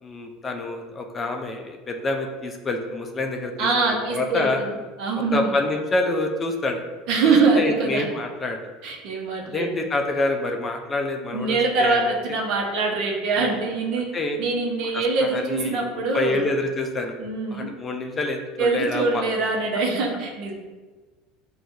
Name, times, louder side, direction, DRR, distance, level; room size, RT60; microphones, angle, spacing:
voice 1, 0.0-4.6 5.3-6.8 7.2-8.6 9.5-12.0 13.4-13.6 14.1-14.4 14.9-15.8 16.1-17.2 17.5-19.2, left 2 dB, 25° left, 3 dB, 0.4 m, -27 dB
voice 2, 3.6-5.5 7.1-8.0 8.8-9.7 11.3-14.1 14.4-16.5 17.2-17.7 18.6-20.5, right 4 dB, 60° right, 0 dB, 0.8 m, -23 dB
6.0 x 2.3 x 2.6 m, 1.3 s
supercardioid pair, 120°, 0 cm